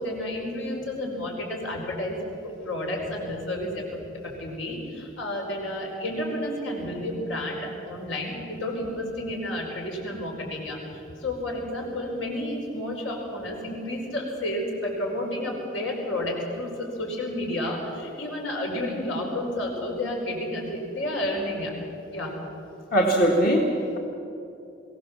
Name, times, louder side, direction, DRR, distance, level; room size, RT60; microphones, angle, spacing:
voice 1, 0.0-2.2 2.4-21.7 22.1-22.3, left 1 dB, 80° left, 0 dB, 5.1 m, -31 dB
voice 2, 22.9-24.0, right 1 dB, 50° left, -2 dB, 1.8 m, -21 dB
22.5 x 18.0 x 7.4 m, 2.8 s
head